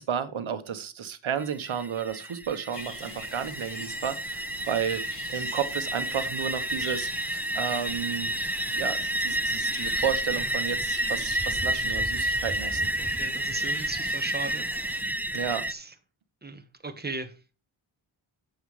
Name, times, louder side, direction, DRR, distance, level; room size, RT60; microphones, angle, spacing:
voice 1, 0.0-5.0 5.3-8.3 8.7-12.9 15.3-15.6, right 8 dB, 70° right, 1.3 m, -32 dB
sound 1, 1.4-15.7, right 1 dB, 5° right, 0.3 m, -30 dB
sound 2, 2.7-15.0, left 4 dB, 60° left, 2.6 m, -44 dB
voice 2, 11.8-12.3 12.7-15.1 15.7-15.9 16.4-17.3, right 3 dB, 20° right, 1.4 m, -38 dB
9.0 x 7.9 x 3.3 m
wide cardioid pair, 100°, 49 cm